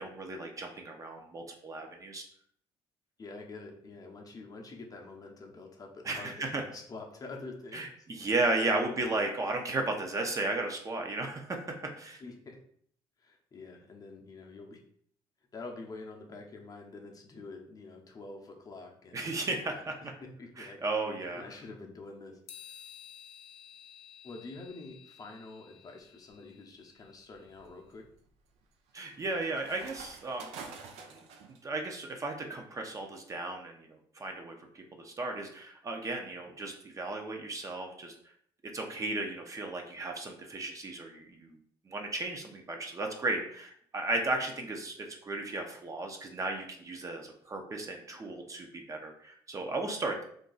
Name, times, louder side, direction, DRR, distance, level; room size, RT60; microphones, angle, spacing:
voice 1, 0.0-2.2 6.1-6.6 7.7-12.2 19.1-19.9 20.6-21.4 28.9-30.5 31.1-31.2 31.5-38.1 38.7-41.6 41.9-50.2, right 2 dB, 30° right, 2 dB, 0.6 m, -35 dB
voice 2, 3.2-7.8 8.2-8.3 8.6-9.0 12.2-12.6 13.2-14.8 15.5-19.2 19.6-19.8 20.2-22.9 24.2-28.1, left 3 dB, 35° left, 1 dB, 0.6 m, -47 dB
sound 1, 22.5-27.8, left 9 dB, 85° left, 0.5 m, -54 dB
sound 2, 26.0-26.4 27.0-31.6, right 4 dB, 85° right, 0.4 m, -49 dB
2.6 x 2.3 x 3.8 m, 0.63 s
cardioid pair, 90°, 10 cm